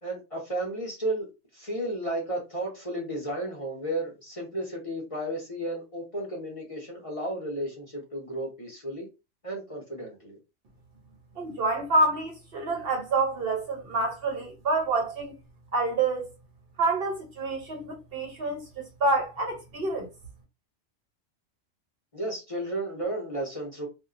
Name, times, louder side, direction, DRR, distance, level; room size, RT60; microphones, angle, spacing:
voice 1, 0.0-9.1 9.4-10.4 22.1-23.9, right 1 dB, 30° left, 0.8 m, -33 dB
voice 2, 11.4-15.3 15.7-16.2 16.8-18.6 19.0-20.1, right 2 dB, 60° right, 0.8 m, -27 dB
2.7 x 2.3 x 2.4 m
omnidirectional pair, 1.3 m